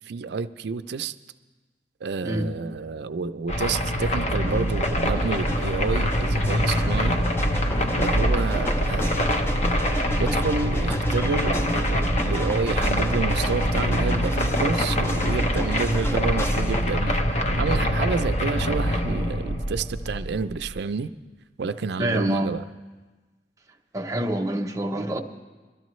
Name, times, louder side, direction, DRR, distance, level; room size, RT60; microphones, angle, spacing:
voice 1, 0.1-1.1 2.0-7.2 7.9-9.5 10.2-21.1 21.6-22.6, right 4 dB, 65° right, 11 dB, 0.5 m, -29 dB
sound 1, 3.5-20.8, equal, 40° left, 0.9 m, -24 dB
sound 2, 4.4-17.0, equal, 15° left, 0.6 m, -34 dB
sound 3, 5.1-10.4, equal, 80° left, 3.5 m, -42 dB
voice 2, 22.0-22.5 23.9-25.2, right 1 dB, 20° right, 3 dB, 0.8 m, -26 dB
22.5 x 13.0 x 3.1 m, 1.3 s
head